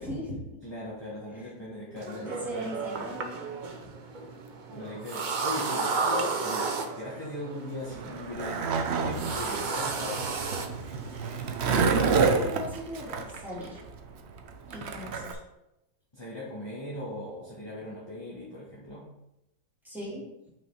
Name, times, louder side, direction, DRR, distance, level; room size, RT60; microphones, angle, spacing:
voice 1, 0.0-0.6 2.0-3.3 12.0-13.8 14.7-15.4 19.8-20.3, equal, ahead, -7 dB, 2.5 m, -38 dB
voice 2, 0.6-3.1 4.7-10.3 15.0-15.2 16.1-19.0, left 1 dB, 15° left, -7 dB, 1.3 m, -39 dB
sound 1, 2.0-12.2, right 4 dB, 85° right, 0.4 m, -34 dB
Skateboard, 7.9-15.3, right 5 dB, 60° right, 0.7 m, -28 dB
5.7 x 5.2 x 4.9 m, 0.89 s
omnidirectional pair, 1.8 m